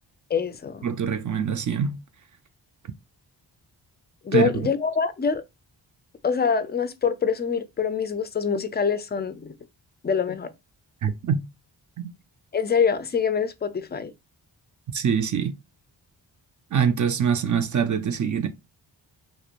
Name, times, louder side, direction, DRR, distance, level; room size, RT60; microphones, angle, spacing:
voice 1, 0.3-0.9 4.2-5.4 6.2-9.5 10.0-10.5 12.5-14.1, left 6 dB, 25° left, 0.3 m, -25 dB
voice 2, 0.8-2.0 4.3-4.7 11.0-11.5 14.9-15.5 16.7-18.5, right 7 dB, 45° right, 0.4 m, -24 dB
2.8 x 2.0 x 2.4 m
cardioid pair, 55°, 45 cm